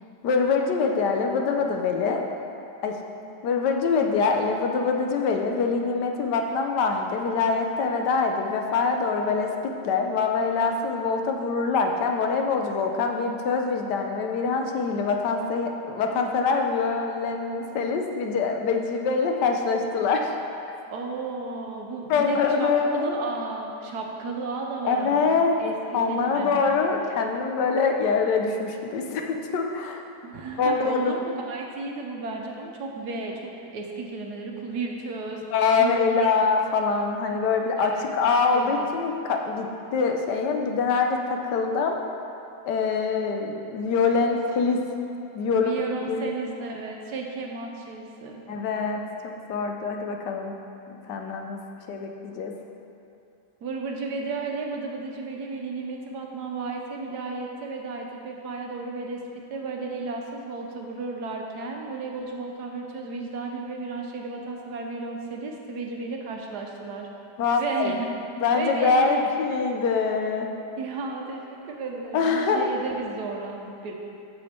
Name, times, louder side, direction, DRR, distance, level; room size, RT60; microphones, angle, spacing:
voice 1, 0.2-2.2 2.8-3.0 3.4-20.3 22.1-23.2 24.8-25.6 25.9-30.0 30.6-31.1 35.5-39.7 39.9-42.0 42.7-44.8 45.3-45.7 46.1-46.2 48.5-50.5 50.9-51.6 51.9-52.5 67.4-67.9 68.4-70.5 72.1-72.7, left 4 dB, 85° left, 3 dB, 1.4 m, -24 dB
voice 2, 20.9-25.8 26.1-26.9 30.2-35.4 35.7-36.1 37.7-38.1 38.5-39.0 40.7-40.8 45.5-48.4 53.6-67.1 67.6-68.1 68.5-69.2 70.8-73.9, right 3 dB, 75° right, 1 dB, 1.4 m, -33 dB
8.2 x 6.5 x 4.4 m, 2.7 s
omnidirectional pair, 1.8 m